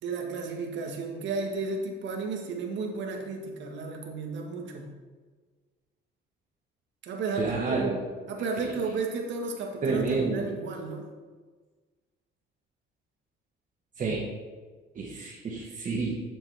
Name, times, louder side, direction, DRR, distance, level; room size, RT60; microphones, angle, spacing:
voice 1, 0.0-4.9 7.0-7.8 8.3-11.1, right 4 dB, 70° right, 2 dB, 1.6 m, -33 dB
voice 2, 7.3-8.0 8.6-8.7 9.8-10.4 14.0-14.3 14.9-16.2, right 4 dB, 40° right, -3 dB, 1.5 m, -29 dB
9.3 x 7.1 x 3.4 m, 1.4 s
cardioid pair, 105°, 20 cm